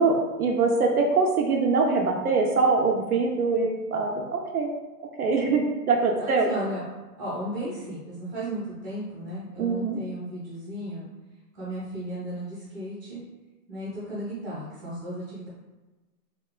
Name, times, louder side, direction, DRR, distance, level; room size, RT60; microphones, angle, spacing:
voice 1, 0.0-4.7 5.2-6.5 9.6-10.0, right 4 dB, 65° right, 0 dB, 0.5 m, -23 dB
voice 2, 6.2-6.8 7.2-11.1 11.5-13.2 13.7-15.5, right 1 dB, 10° right, -10 dB, 0.7 m, -35 dB
3.2 x 2.8 x 2.2 m, 1.2 s
hypercardioid pair, 175°, 49 cm